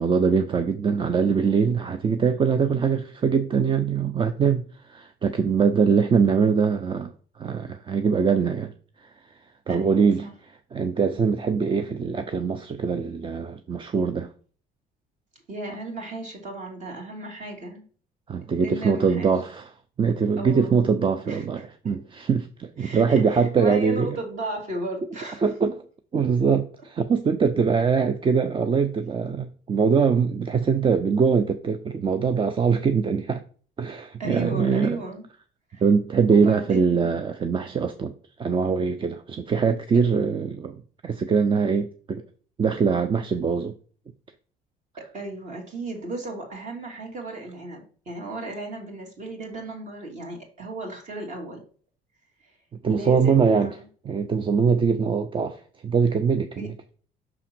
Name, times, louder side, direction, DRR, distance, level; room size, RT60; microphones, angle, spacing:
voice 1, 0.0-7.1 7.4-8.7 9.0-9.1 9.7-10.3 10.7-14.3 18.3-19.7 20.0-24.2 25.4-25.7 26.1-33.4 33.8-35.0 35.8-38.1 38.4-42.2 42.6-43.7 52.8-53.7 54.1-56.7, right 5 dB, 30° right, 0.5 m, -22 dB
voice 2, 9.7-10.3 15.5-17.8 18.6-19.3 20.4-20.8 21.3-21.4 21.8-22.0 22.8-25.5 34.2-35.2 35.7-35.8 36.3-37.2 45.0-51.6 52.4-52.5 52.9-53.8 56.6-56.7, right 2 dB, 45° right, 2.6 m, -35 dB
6.0 x 3.7 x 6.0 m
cardioid pair, 110°, 17 cm